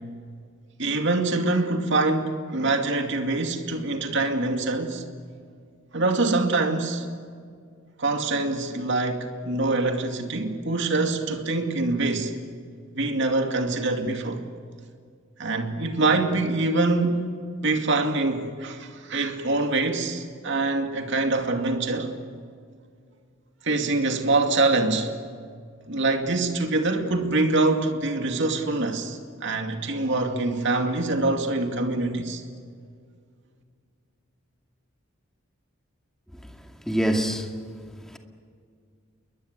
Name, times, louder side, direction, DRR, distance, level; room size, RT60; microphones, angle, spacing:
voice 1, 0.8-5.0 5.9-7.1 8.0-12.3 12.9-14.4 15.4-22.1 23.6-25.1 25.9-32.4, right 2 dB, 60° right, 2.4 m, -25 dB
voice 2, 36.9-37.5 38.1-38.2, right 1 dB, ahead, 2.3 m, -25 dB
29.0 x 22.5 x 8.1 m
head